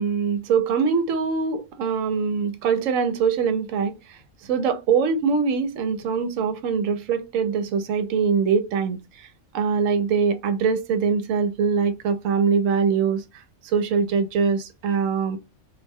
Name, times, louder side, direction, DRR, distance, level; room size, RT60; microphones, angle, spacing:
voice 1, 0.0-9.3 9.5-13.2 13.6-15.4, right 6 dB, 75° right, 1.0 m, -23 dB
2.5 x 2.1 x 3.3 m
omnidirectional pair, 1.4 m